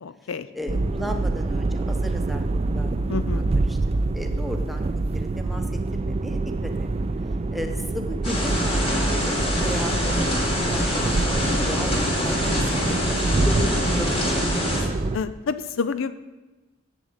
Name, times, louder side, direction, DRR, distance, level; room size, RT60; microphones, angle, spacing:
voice 1, 0.0-0.5 3.1-3.4 15.1-16.1, left 5 dB, 65° left, 13 dB, 0.5 m, -28 dB
voice 2, 0.5-2.4 2.7-2.9 3.3-3.4 3.7-3.8 4.1-4.8 5.1-6.9 7.5-10.2 10.7-13.1 13.4-14.7, left 1 dB, ahead, 4 dB, 0.9 m, -35 dB
sound 1, 0.7-15.2, right 2 dB, 30° right, 0.3 m, -26 dB
sound 2, 8.2-14.8, left 1 dB, 25° left, 3.4 m, -25 dB
8.5 x 7.2 x 8.0 m, 1.2 s
head